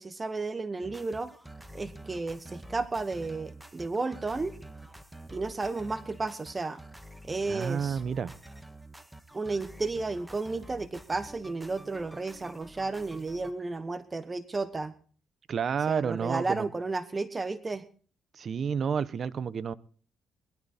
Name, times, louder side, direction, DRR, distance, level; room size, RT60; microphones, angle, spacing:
voice 1, 0.0-1.3 1.7-4.5 5.3-6.8 7.2-8.0 9.3-14.9 15.9-17.8, right 3 dB, 25° right, 12 dB, 1.2 m, -33 dB
sound 1, 0.8-13.5, right 1 dB, 5° right, 1.5 m, -48 dB
voice 2, 7.5-8.3 15.5-16.7 18.3-19.7, right 6 dB, 50° right, 16 dB, 1.0 m, -30 dB
21.5 x 12.5 x 4.3 m, 0.42 s
cardioid pair, 90°, 0 cm